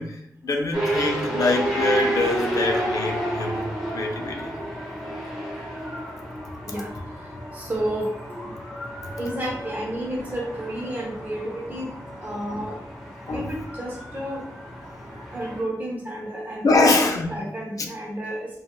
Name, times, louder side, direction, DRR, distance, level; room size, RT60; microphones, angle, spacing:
voice 1, 0.0-4.5 12.5-12.7 13.3-13.5 16.6-17.4 17.8-17.9, left 2 dB, 60° left, 2 dB, 0.5 m, -24 dB
sound 1, 0.7-15.6, right 1 dB, ahead, 1.0 m, -31 dB
voice 2, 7.6-8.5 9.2-11.9 12.2-12.7 13.3-14.4 15.3-17.0 17.3-18.5, right 1 dB, 25° right, -2 dB, 0.6 m, -31 dB
3.3 x 2.3 x 2.3 m, 0.78 s
wide cardioid pair, 110°, 7 cm